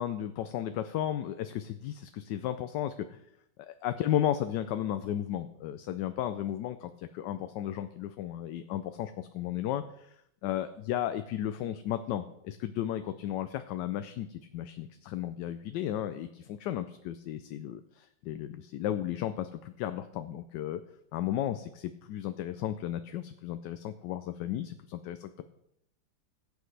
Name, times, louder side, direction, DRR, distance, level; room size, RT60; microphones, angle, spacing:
voice 1, 0.0-3.2 3.7-10.2 10.4-20.8 21.1-25.4, left 11 dB, 80° left, 10 dB, 1.2 m, -34 dB
16.0 x 8.3 x 3.3 m, 0.76 s
omnidirectional pair, 1.9 m